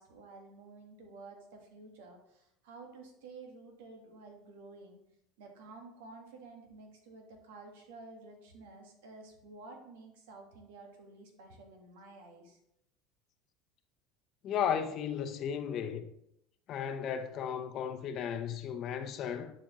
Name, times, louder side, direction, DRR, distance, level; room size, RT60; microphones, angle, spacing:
voice 1, 0.0-5.0 5.4-12.6, right 3 dB, 85° right, 1.5 m, -52 dB
voice 2, 14.4-16.1 16.7-19.5, left 8 dB, 50° left, 0.7 m, -34 dB
10.5 x 5.0 x 3.0 m
supercardioid pair, 100°, 0 cm